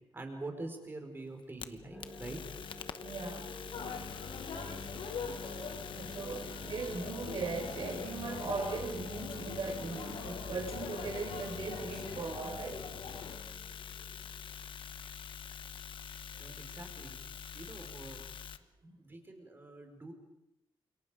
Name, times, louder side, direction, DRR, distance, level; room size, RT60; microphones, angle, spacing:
voice 1, 0.1-2.4 16.4-17.2 17.5-18.2 18.8-20.1, right 2 dB, 20° right, 4 dB, 4.9 m, -45 dB
sound 1, 1.3-18.6, left 8 dB, 55° left, 1.0 m, -46 dB
sound 2, 1.9-14.7, equal, 5° left, 4.1 m, -49 dB
voice 2, 3.0-3.5 5.9-13.0 16.1-16.6, right 4 dB, 50° right, 4 dB, 5.3 m, -39 dB
sound 3, 3.7-13.4, left 5 dB, 70° left, 6.8 m, -43 dB
29.0 x 28.0 x 5.2 m, 0.87 s
wide cardioid pair, 165°, 10 cm